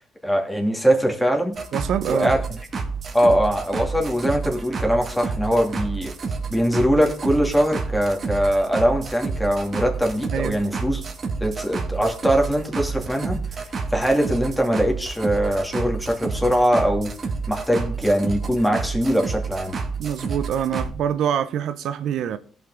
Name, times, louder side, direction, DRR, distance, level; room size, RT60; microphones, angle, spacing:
voice 1, 0.2-1.5 2.1-2.4 3.1-6.1 6.5-11.0 11.4-13.6 13.9-17.1 17.5-19.8, equal, 5° left, 2.5 m, -22 dB
sound 1, 1.5-20.9, right 4 dB, 45° right, 1.9 m, -29 dB
voice 2, 1.7-2.4 10.3-10.6 20.0-22.4, right 9 dB, 75° right, 0.6 m, -25 dB
17.0 x 5.8 x 3.8 m
cardioid pair, 90°, 0 cm